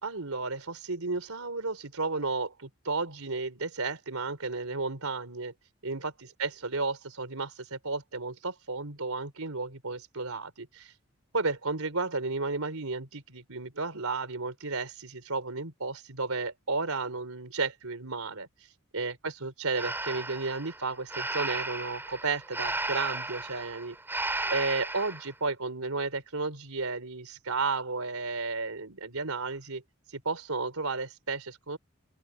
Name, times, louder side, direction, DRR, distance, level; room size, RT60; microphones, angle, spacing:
voice 1, 0.0-5.5 5.8-10.9 11.3-18.5 18.9-24.0 24.5-29.8 30.1-31.8, right 3 dB, 90° right, 3.9 m, -33 dB
Breathing, 19.7-25.3, right 2 dB, 10° right, 4.3 m, -34 dB
open air
head